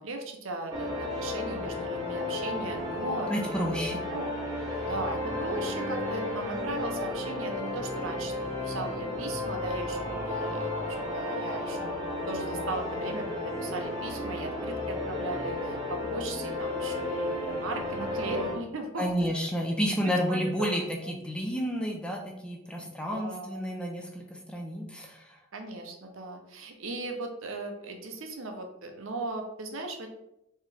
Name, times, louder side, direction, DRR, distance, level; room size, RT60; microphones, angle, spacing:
voice 1, 0.0-3.3 3.7-3.8 4.1-4.3 4.9-11.9 12.3-19.1 20.0-20.4 21.0-21.1 22.8-23.8 25.5-30.1, right 2 dB, 70° right, 4 dB, 0.7 m, -37 dB
sound 1, 0.7-18.5, left 1 dB, 20° right, 1.0 m, -33 dB
voice 2, 3.3-4.0 4.7-4.9 19.0-25.4, equal, 5° left, 0 dB, 0.5 m, -31 dB
4.5 x 3.0 x 3.4 m, 0.84 s
head